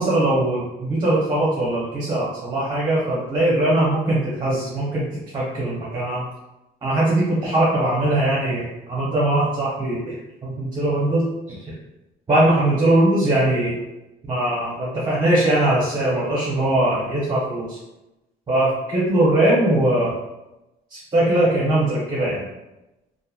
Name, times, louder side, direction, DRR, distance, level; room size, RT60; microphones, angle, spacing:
voice 1, 0.0-5.1 5.3-6.2 6.8-10.1 10.4-11.2 11.6-11.7 12.3-13.8 14.3-17.8 18.5-20.2 20.9-22.4, right 1 dB, 25° right, -6 dB, 0.8 m, -20 dB
2.6 x 2.5 x 2.3 m, 0.98 s
cardioid pair, 110°, 17 cm